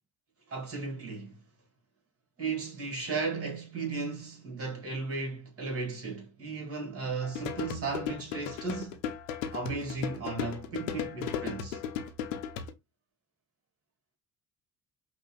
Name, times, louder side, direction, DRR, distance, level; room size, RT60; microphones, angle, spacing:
voice 1, 0.5-1.4 2.4-9.0 9.5-11.8, right 4 dB, 35° right, 2.5 m, -35 dB
sound 1, 7.2-12.7, left 8 dB, 75° left, 0.7 m, -36 dB
5.3 x 2.8 x 2.3 m
hypercardioid pair, 55°, 39 cm